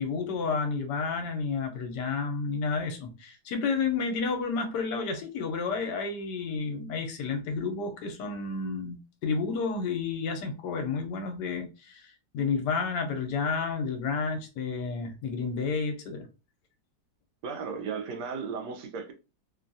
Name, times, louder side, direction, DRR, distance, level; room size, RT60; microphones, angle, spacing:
voice 1, 0.0-16.3, left 4 dB, 70° left, 1.2 m, -31 dB
voice 2, 17.4-19.1, right 5 dB, 70° right, 1.1 m, -35 dB
3.1 x 2.3 x 2.6 m
omnidirectional pair, 2.0 m